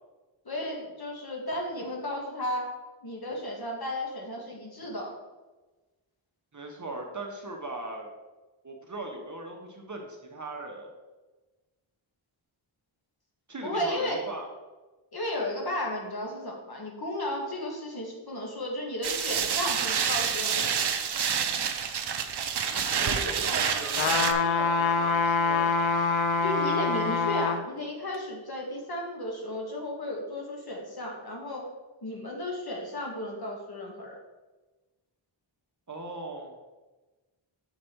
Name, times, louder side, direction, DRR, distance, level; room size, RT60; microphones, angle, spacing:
voice 1, 0.5-2.7 3.0-5.2 13.6-14.2 15.1-20.8 23.0-23.3 26.4-31.7 32.0-34.2, left 1 dB, 50° left, -1 dB, 1.7 m, -34 dB
voice 2, 6.5-8.1 8.6-10.9 13.5-14.5 22.7-25.9 35.9-36.5, right 2 dB, 40° right, 1 dB, 1.0 m, -39 dB
sound 1, 19.0-24.3, right 7 dB, 55° right, 0.6 m, -28 dB
sound 2, 24.0-27.6 28.1-28.2, left 4 dB, 70° left, 0.7 m, -25 dB
6.4 x 5.1 x 4.5 m, 1.2 s
wide cardioid pair, 110°, 48 cm